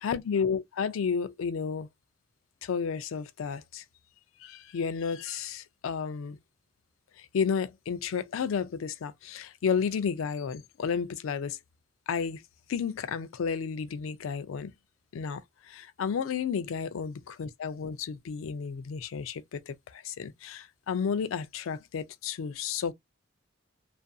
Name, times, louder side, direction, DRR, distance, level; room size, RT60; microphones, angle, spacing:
voice 1, 0.0-1.9 2.6-3.8 4.4-6.4 7.2-11.6 12.1-12.4 12.7-14.7 15.1-22.9, left 6 dB, 80° left, 0.4 m, -32 dB
2.5 x 2.5 x 2.2 m
head